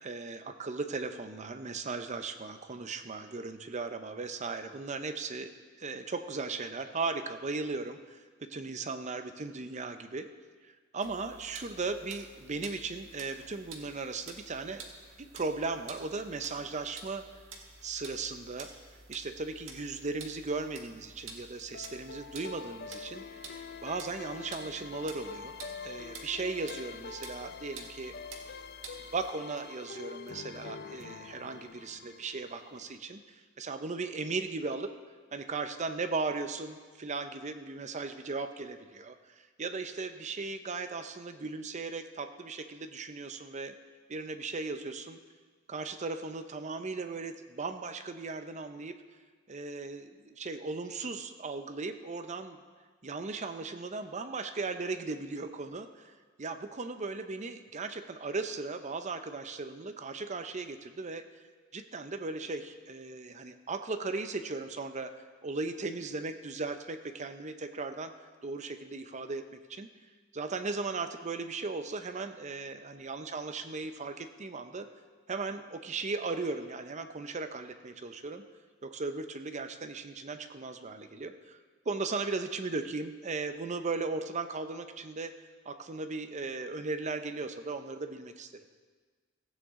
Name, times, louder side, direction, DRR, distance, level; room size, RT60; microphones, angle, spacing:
voice 1, 0.0-5.5 5.8-10.3 10.9-14.8 15.2-17.2 17.8-18.7 19.1-25.5 25.8-28.2 29.1-33.2 33.6-34.9 35.3-39.2 39.6-43.8 44.1-45.2 45.7-48.9 49.5-52.6 53.0-61.2 61.7-65.1 65.4-68.1 68.4-69.4 69.7-69.9 70.3-74.9 75.3-78.4 78.8-81.6 81.9-85.3 85.6-88.5, right 3 dB, 35° right, 8 dB, 0.6 m, -37 dB
sound 1, 11.0-29.3, right 4 dB, 80° right, 1.5 m, -50 dB
sound 2, 21.7-33.0, left 5 dB, 55° left, 0.5 m, -45 dB
16.0 x 8.7 x 3.7 m, 1.5 s
head